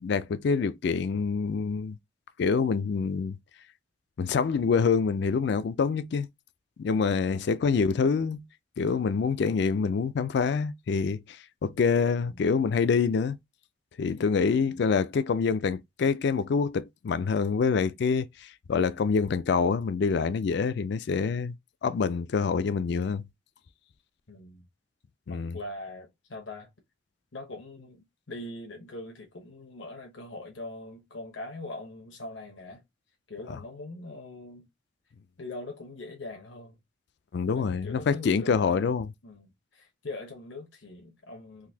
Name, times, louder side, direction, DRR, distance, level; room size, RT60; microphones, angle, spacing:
voice 1, 0.0-2.0 2.4-3.4 4.2-6.3 6.8-8.4 8.8-11.4 11.6-13.4 14.0-21.5 21.8-23.2 25.3-25.6 37.3-39.1, left 5 dB, 65° left, 0.3 m, -26 dB
voice 2, 7.3-7.6 12.2-12.5 14.6-14.9 24.3-24.7 25.3-26.7 27.3-32.8 33.3-34.7 35.4-36.8 37.5-38.9 39.2-41.7, left 2 dB, 85° left, 0.9 m, -42 dB
3.9 x 2.6 x 2.7 m
head